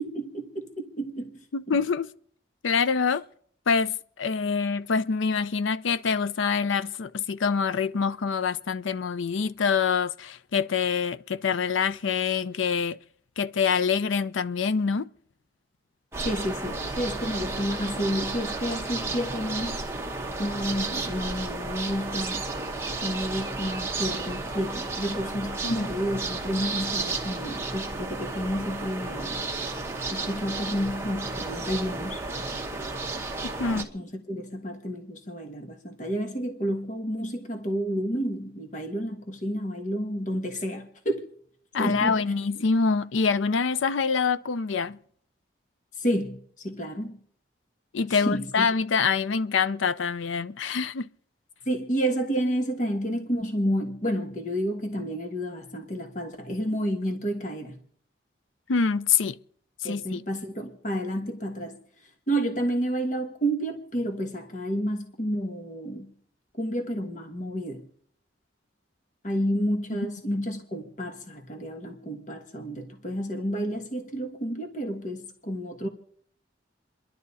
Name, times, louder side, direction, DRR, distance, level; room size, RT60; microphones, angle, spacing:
voice 1, 0.0-1.4 16.2-19.8 20.4-22.5 23.0-29.4 30.1-32.2 33.7-41.3 41.8-42.2 46.0-47.2 48.1-48.7 51.7-57.8 59.8-61.8 62.3-66.1 66.6-67.8 69.2-75.9, equal, 40° left, 1.5 m, -30 dB
voice 2, 1.5-2.1 2.6-3.2 3.7-13.0 13.4-15.1 25.6-25.9 33.4-33.9 41.7-45.0 47.9-51.1 58.7-59.4 59.8-60.2, left 5 dB, 85° left, 0.5 m, -25 dB
sound 1, 16.1-33.8, right 3 dB, 15° right, 1.2 m, -32 dB
29.0 x 11.5 x 4.1 m
head